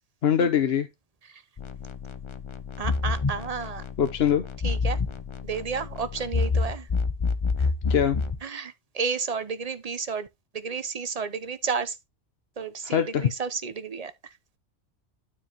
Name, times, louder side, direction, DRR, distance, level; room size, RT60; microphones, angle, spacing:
voice 1, 0.2-0.9 4.0-4.4 7.9-8.2 12.9-13.3, left 8 dB, 60° left, 1.0 m, -22 dB
sound 1, 1.6-8.4, left 4 dB, 30° left, 0.6 m, -28 dB
voice 2, 2.8-3.8 4.6-5.0 5.4-6.9 8.4-10.3 10.5-12.0 12.6-14.3, right 5 dB, 40° right, 0.7 m, -32 dB
12.5 x 4.7 x 2.9 m
omnidirectional pair, 1.2 m